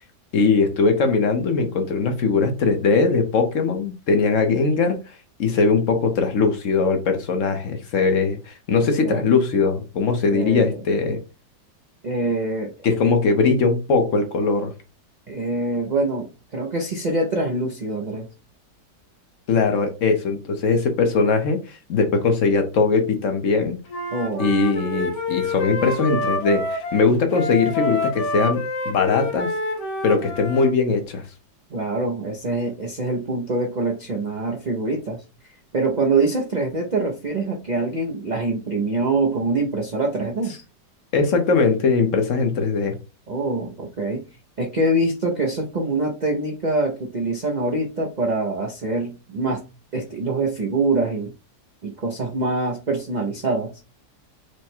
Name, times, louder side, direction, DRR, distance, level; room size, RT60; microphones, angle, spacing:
voice 1, 0.3-5.0 5.4-11.2 12.8-14.7 19.5-23.8 24.4-28.6 28.8-29.5 30.0-31.2 41.1-42.9, left 4 dB, 55° left, 1.0 m, -20 dB
voice 2, 10.3-10.8 12.0-12.7 13.0-13.1 15.3-18.3 24.1-24.5 31.7-35.2 35.7-40.5 43.3-44.2 44.6-49.6 49.9-51.3 51.8-53.7, right 2 dB, 60° right, 0.4 m, -24 dB
Wind instrument woodwind instrument, 23.9-30.7, left 2 dB, 75° left, 1.7 m, -27 dB
4.7 x 2.2 x 4.3 m
omnidirectional pair, 1.8 m